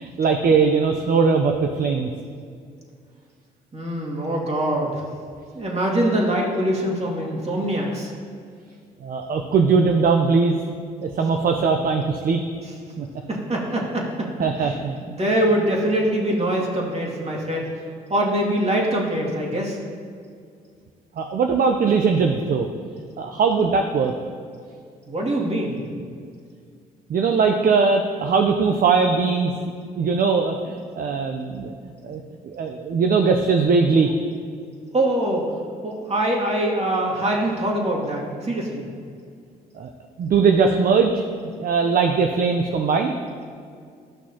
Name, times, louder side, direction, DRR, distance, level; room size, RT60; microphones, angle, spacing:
voice 1, 0.0-2.1 9.0-10.6 11.0-12.4 13.0-13.1 13.7-13.8 14.4-15.0 21.2-22.7 23.2-24.1 27.1-29.5 30.0-31.8 32.0-34.1 39.7-39.9 40.2-41.2 41.6-43.2, right 5 dB, 50° right, 5 dB, 0.6 m, -20 dB
voice 2, 3.7-5.0 5.5-8.1 13.3-14.3 15.0-17.7 18.1-19.8 25.1-25.9 34.9-35.5 35.8-38.8, right 1 dB, 35° right, -2 dB, 2.3 m, -23 dB
13.0 x 6.1 x 2.9 m, 2.2 s
hypercardioid pair, 55°, 19 cm